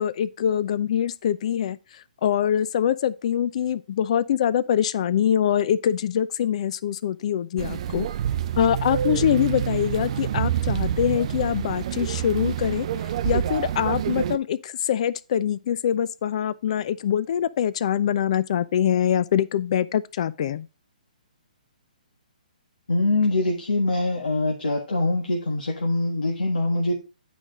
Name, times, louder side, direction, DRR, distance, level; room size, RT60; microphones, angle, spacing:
voice 1, 0.0-8.1 8.5-12.9 13.2-20.7, left 9 dB, 45° left, 0.5 m, -24 dB
sound 1, 7.6-14.4, right 10 dB, 45° right, 0.5 m, -27 dB
voice 2, 22.9-26.9, left 2 dB, 85° left, 1.5 m, -23 dB
9.1 x 5.0 x 3.8 m
hypercardioid pair, 145°, 5 cm